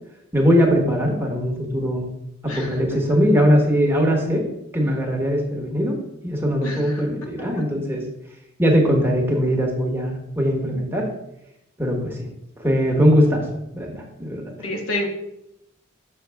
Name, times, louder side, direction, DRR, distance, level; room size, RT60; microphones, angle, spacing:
voice 1, 0.3-2.1 2.4-4.4 4.7-6.0 6.2-8.0 8.6-11.1 11.8-12.3 12.6-13.4 13.7-14.5, equal, 10° right, 0 dB, 1.2 m, -20 dB
voice 2, 6.6-6.9 14.6-15.1, left 1 dB, 90° left, 2 dB, 1.2 m, -28 dB
6.3 x 6.2 x 3.4 m, 0.85 s
head